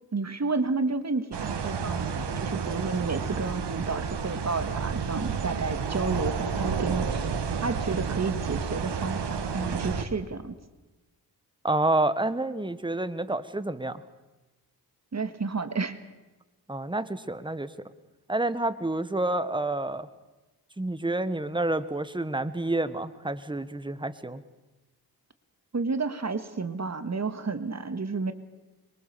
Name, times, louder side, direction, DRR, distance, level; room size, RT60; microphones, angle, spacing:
voice 1, 0.1-7.3 7.6-10.6 15.1-15.9 25.7-28.3, right 4 dB, 40° right, 10 dB, 1.8 m, -31 dB
sound 1, 1.3-10.1, right 6 dB, 90° right, 1.8 m, -31 dB
voice 2, 11.6-14.0 16.7-17.7 18.3-20.1 20.8-24.4, right 2 dB, 10° right, 13 dB, 1.3 m, -28 dB
25.0 x 23.0 x 6.9 m, 1.1 s
cardioid pair, 80°, 40 cm